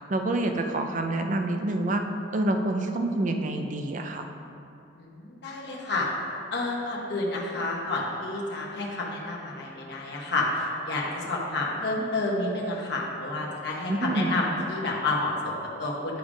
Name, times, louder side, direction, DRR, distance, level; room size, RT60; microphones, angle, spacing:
voice 1, 0.1-2.0 2.3-4.3 13.9-14.4, right 2 dB, 40° right, 5 dB, 0.5 m, -27 dB
voice 2, 5.0-6.1 6.5-16.2, left 2 dB, 60° left, -3 dB, 1.0 m, -30 dB
10.0 x 3.5 x 4.9 m, 2.7 s
head